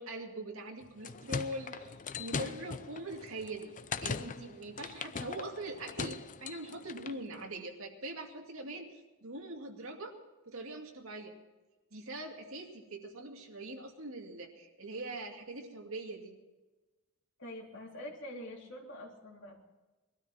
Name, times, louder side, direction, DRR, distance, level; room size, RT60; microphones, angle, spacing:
voice 1, 0.0-3.8 4.0-10.2 10.5-11.3 11.9-16.3, right 2 dB, 65° right, 2 dB, 2.4 m, -42 dB
sound 1, 0.8-7.2, left 5 dB, 35° left, 0.6 m, -40 dB
voice 2, 17.4-19.7, left 1 dB, 55° left, -2 dB, 3.6 m, -45 dB
21.0 x 13.0 x 4.4 m, 1.2 s
head